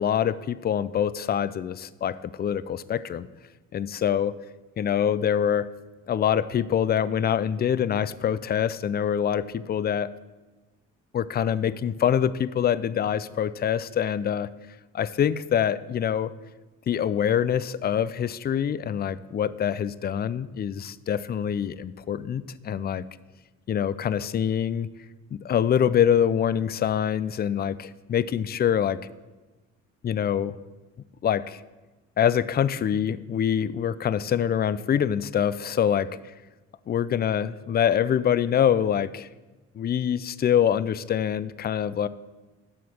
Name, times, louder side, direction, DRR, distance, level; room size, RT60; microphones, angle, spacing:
voice 1, 0.0-3.3 3.7-4.4 4.8-5.7 6.1-10.1 11.1-14.5 14.9-16.3 16.9-23.0 23.7-24.9 25.3-29.0 30.0-30.6 31.2-31.6 32.2-36.1 36.9-39.3 39.8-42.1, left 9 dB, 35° left, 17 dB, 0.4 m, -25 dB
7.7 x 6.1 x 7.0 m, 1.2 s
cardioid pair, 90°, 30 cm